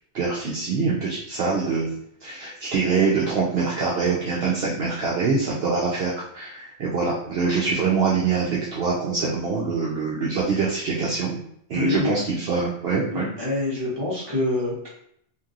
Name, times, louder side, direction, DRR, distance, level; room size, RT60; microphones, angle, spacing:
voice 1, 0.1-1.9 2.2-11.4 11.7-13.3, right 4 dB, 65° right, -4 dB, 0.8 m, -24 dB
voice 2, 11.7-12.1 13.1-14.9, left 2 dB, 20° right, -7 dB, 1.1 m, -26 dB
3.0 x 2.6 x 2.4 m, 0.70 s
omnidirectional pair, 1.2 m